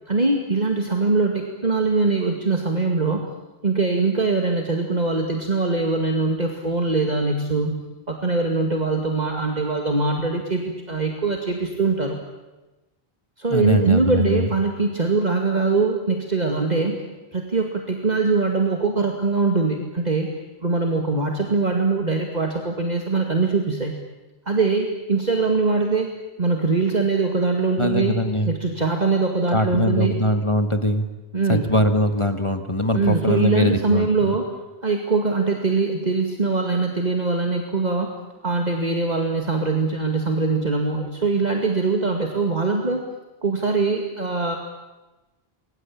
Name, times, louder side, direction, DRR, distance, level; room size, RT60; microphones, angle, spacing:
voice 1, 0.1-3.2 3.6-12.2 13.4-17.0 17.3-20.3 20.6-23.9 24.5-28.2 28.5-30.2 31.3-31.7 32.9-34.6 34.8-38.1 38.4-43.0 43.4-44.6, right 3 dB, 40° right, 2 dB, 2.4 m, -22 dB
voice 2, 13.5-14.5 27.8-28.5 29.5-31.1 31.5-34.4, left 1 dB, 25° left, 8 dB, 1.7 m, -22 dB
28.0 x 23.0 x 8.8 m, 1.1 s
omnidirectional pair, 1.1 m